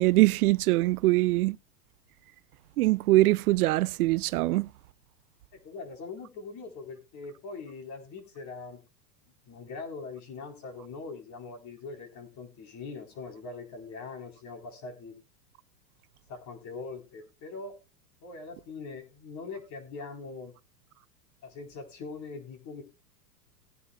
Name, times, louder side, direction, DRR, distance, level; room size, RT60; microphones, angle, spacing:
voice 1, 0.0-1.6 2.8-4.7, right 19 dB, 65° right, 0.5 m, -23 dB
voice 2, 5.5-8.8 9.5-15.2 16.3-17.7 18.2-20.5 21.4-22.8, left 4 dB, 35° left, 4.2 m, -42 dB
20.0 x 9.7 x 2.4 m
hypercardioid pair, 130°, 49 cm